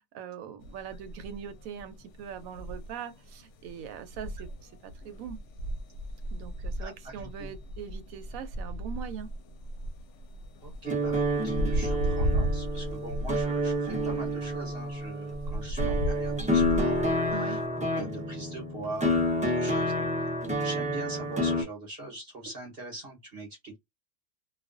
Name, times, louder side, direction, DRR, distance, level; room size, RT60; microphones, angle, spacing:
voice 1, 0.0-5.4 6.3-9.3 17.3-17.7, right 7 dB, 85° right, 1.0 m, -41 dB
sound 1, 0.6-17.7, equal, 70° left, 0.8 m, -35 dB
voice 2, 6.8-7.5 10.6-17.6 17.9-19.3 19.6-20.3 20.6-23.8, right 2 dB, 50° right, 1.0 m, -42 dB
sound 2, 10.8-21.6, equal, 10° right, 0.3 m, -29 dB
2.4 x 2.3 x 2.4 m
omnidirectional pair, 1.4 m